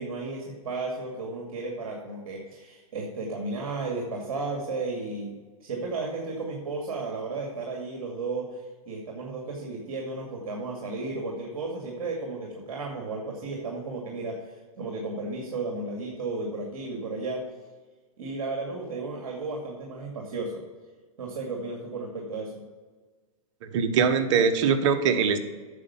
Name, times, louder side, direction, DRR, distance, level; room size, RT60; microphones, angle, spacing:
voice 1, 0.0-5.3 5.6-8.6 8.9-17.4 18.2-20.5 21.2-22.6, right 3 dB, 75° right, -1 dB, 2.3 m, -34 dB
voice 2, 23.6-25.4, right 6 dB, 55° right, 8 dB, 1.2 m, -22 dB
9.6 x 6.6 x 5.7 m, 1.4 s
hypercardioid pair, 135°, 18 cm